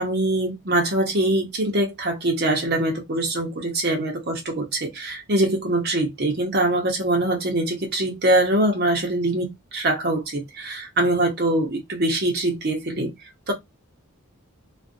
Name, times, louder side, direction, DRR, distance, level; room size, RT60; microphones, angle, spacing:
voice 1, 0.0-13.1 13.5-13.6, right 1 dB, 45° right, 1.0 m, -23 dB
2.5 x 2.5 x 2.5 m
head